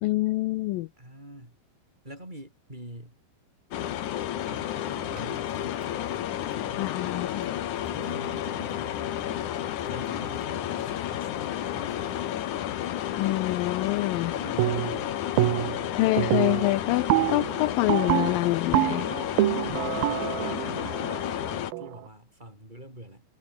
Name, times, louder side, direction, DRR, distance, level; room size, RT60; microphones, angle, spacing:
voice 1, 0.0-0.9 6.8-7.5 13.2-14.3 15.9-19.1, left 18 dB, 85° left, 2.3 m, -26 dB
voice 2, 1.0-1.6 2.0-3.2 4.5-5.7 6.5-7.2 7.9-9.0 9.8-12.1 14.0-15.1 19.6-23.2, right 1 dB, 10° right, 7.8 m, -45 dB
sound 1, 3.7-21.7, left 11 dB, 60° left, 2.6 m, -31 dB
sound 2, 5.0-12.2, right 4 dB, 60° right, 8.5 m, -50 dB
sound 3, 14.6-15.0 15.4-15.9 16.2-22.0, right 16 dB, 80° right, 2.7 m, -27 dB
omnidirectional pair, 4.2 m